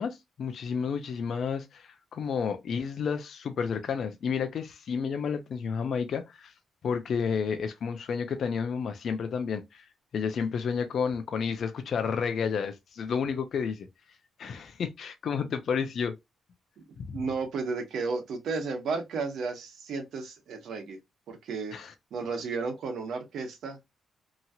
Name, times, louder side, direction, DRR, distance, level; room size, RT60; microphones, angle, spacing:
voice 1, 0.0-6.5 6.8-9.8 10.1-13.9 14.4-16.2 17.0-17.1 21.7-21.9, left 6 dB, 55° left, 0.5 m, -31 dB
voice 2, 17.1-21.0 21.3-21.7 22.1-23.8, right 4 dB, 70° right, 1.0 m, -33 dB
2.9 x 2.8 x 2.3 m
cardioid pair, 140°, 0 cm